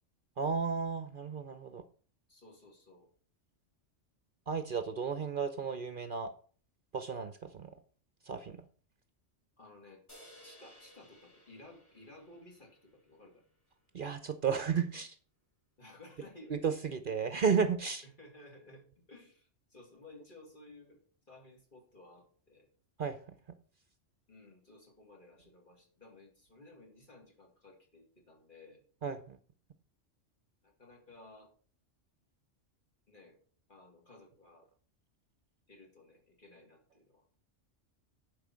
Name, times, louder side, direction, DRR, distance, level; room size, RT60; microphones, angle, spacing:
voice 1, 0.4-1.8 4.5-6.3 6.9-7.7 8.2-8.6 13.9-15.2 16.5-18.0 23.0-23.4 29.0-29.4, right 6 dB, 50° right, 11 dB, 0.8 m, -33 dB
voice 2, 2.3-3.1 9.6-10.0 10.4-13.4 15.8-17.4 18.0-21.0 21.3-22.7 24.3-28.8 30.6-31.5 33.1-33.4 33.7-34.7 35.7-37.2, left 2 dB, 45° left, 0 dB, 2.7 m, -56 dB
sound 1, 10.1-13.6, equal, 15° left, 5.7 m, -59 dB
10.5 x 5.0 x 6.2 m, 0.43 s
omnidirectional pair, 1.2 m